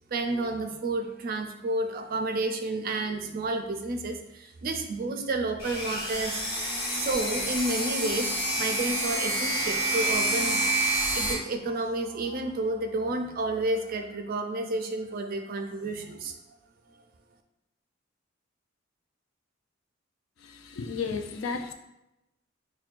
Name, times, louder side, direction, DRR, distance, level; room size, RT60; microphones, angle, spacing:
voice 1, 0.1-10.6 11.1-16.4, right 2 dB, 45° right, 5 dB, 0.4 m, -31 dB
sound 1, 5.6-11.3, right 1 dB, 25° left, 1.3 m, -28 dB
voice 2, 20.4-21.7, left 5 dB, 70° left, 6 dB, 0.4 m, -33 dB
5.9 x 2.2 x 2.5 m, 0.92 s
head